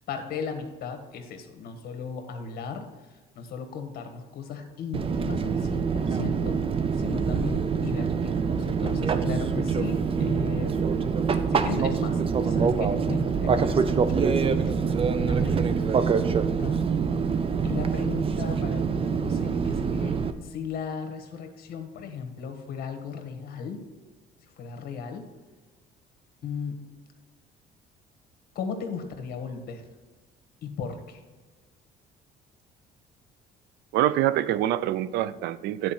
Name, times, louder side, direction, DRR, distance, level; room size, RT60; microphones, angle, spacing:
voice 1, 0.1-6.6 6.9-10.7 11.5-13.9 14.6-16.8 17.6-23.8 24.4-25.3 26.4-26.8 28.5-29.9 30.6-31.2, left 6 dB, 65° left, 6 dB, 1.5 m, -36 dB
Fixed-wing aircraft airplane, 4.9-20.3, right 5 dB, 35° right, 0.6 m, -25 dB
voice 2, 33.9-35.9, right 13 dB, 80° right, 16 dB, 0.5 m, -25 dB
9.8 x 4.7 x 5.9 m, 1.3 s
cardioid pair, 110°, 17 cm